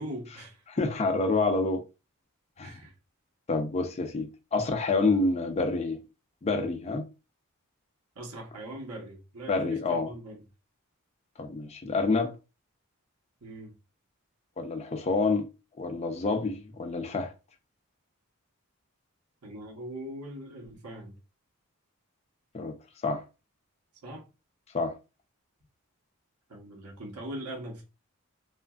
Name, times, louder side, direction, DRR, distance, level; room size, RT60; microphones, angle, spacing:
voice 1, 0.0-0.9 2.6-2.9 8.1-10.4 13.4-13.8 19.4-21.1 24.0-24.2 26.5-27.8, right 1 dB, 90° right, 1.1 m, -41 dB
voice 2, 0.7-1.8 2.6-2.8 3.5-6.0 6.4-7.1 9.5-10.1 11.4-12.3 14.6-15.5 15.8-17.3 22.5-22.7 23.0-23.2 24.7-24.9, left 3 dB, 30° left, 0.4 m, -28 dB
2.9 x 2.4 x 2.4 m
head